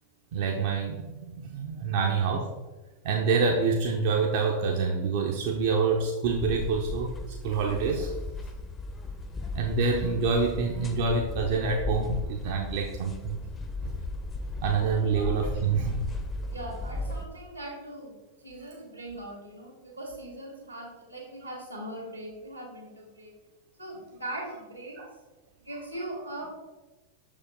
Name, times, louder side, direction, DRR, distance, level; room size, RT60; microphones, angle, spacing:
voice 1, 0.3-2.5 3.0-7.2 7.4-8.2 9.5-13.4 13.8-14.0 14.6-16.0 25.0-25.1, right 4 dB, 50° right, 1 dB, 0.6 m, -27 dB
sound 1, 6.2-17.3, left 2 dB, 20° left, 0.6 m, -36 dB
voice 2, 16.4-23.3 23.8-25.0 25.6-26.4, right 1 dB, 85° right, -1 dB, 2.0 m, -40 dB
6.4 x 5.0 x 3.5 m, 1.1 s
figure-of-eight pair, 90°, 0 cm